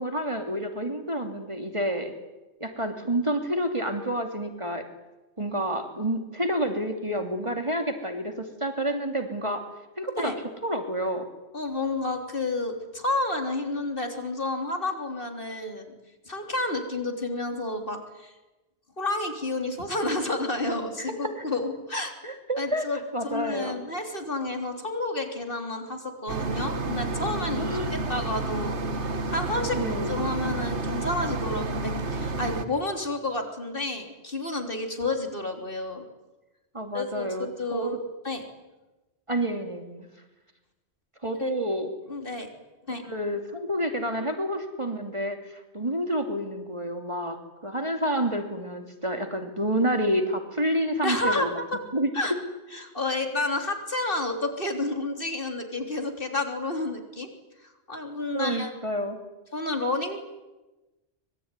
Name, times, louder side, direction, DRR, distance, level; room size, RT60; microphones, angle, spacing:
voice 1, 0.0-2.1 2.6-4.8 5.4-9.6 10.0-10.3 10.6-11.3 21.0-21.5 22.2-22.9 23.1-23.8 27.6-28.0 29.7-30.2 36.7-38.0 39.3-40.1 41.2-41.9 43.0-45.4 45.7-47.4 47.6-51.5 51.9-52.3 58.3-59.2, right 1 dB, 25° right, 5 dB, 2.9 m, -29 dB
voice 2, 11.5-15.9 16.3-18.3 19.0-22.1 22.6-23.0 23.2-28.8 29.2-29.8 30.1-36.0 36.9-38.0 38.2-38.5 41.4-41.5 42.1-42.5 42.9-43.1 51.0-51.8 52.1-52.3 52.7-57.3 57.6-58.7 59.5-60.2, left 2 dB, 50° left, 5 dB, 3.8 m, -30 dB
sound 1, 26.3-32.7, right 2 dB, 80° right, 1.9 m, -30 dB
25.0 x 22.0 x 9.8 m, 1.1 s
omnidirectional pair, 1.2 m